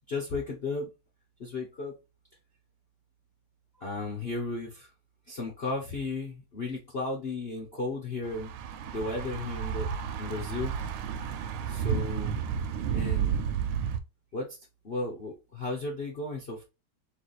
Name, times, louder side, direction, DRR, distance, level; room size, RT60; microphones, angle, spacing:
voice 1, 0.1-0.9 1.4-1.9 3.7-4.9 5.3-8.5 8.9-9.9 10.2-10.7 11.7-12.3 12.9-13.3 14.3-14.6 14.8-16.6, left 3 dB, 45° left, 0 dB, 0.8 m, -34 dB
Thunder / Bicycle, 8.2-14.0, right 7 dB, 85° right, 1.4 m, -31 dB
3.8 x 3.1 x 4.0 m, 0.27 s
omnidirectional pair, 2.2 m